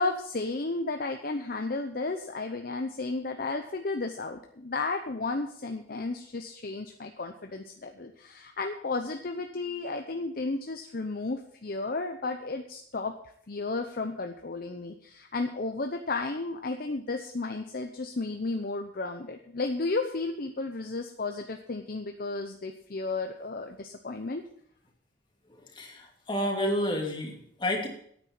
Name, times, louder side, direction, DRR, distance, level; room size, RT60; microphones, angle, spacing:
voice 1, 0.0-13.1 13.5-24.4, left 3 dB, 55° left, 5 dB, 0.8 m, -33 dB
voice 2, 25.5-27.9, left 1 dB, 25° left, 0 dB, 2.7 m, -30 dB
9.7 x 9.0 x 7.0 m, 0.64 s
head